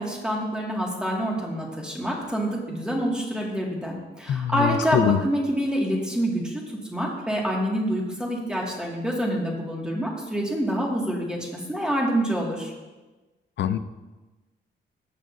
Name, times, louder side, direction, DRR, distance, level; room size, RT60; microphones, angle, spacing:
voice 1, 0.0-6.6 6.9-12.7, equal, 5° right, -2 dB, 1.9 m, -27 dB
voice 2, 4.3-5.2 13.6-13.8, left 9 dB, 70° left, 13 dB, 0.5 m, -23 dB
15.0 x 6.3 x 2.6 m, 1.2 s
cardioid pair, 100°, 19 cm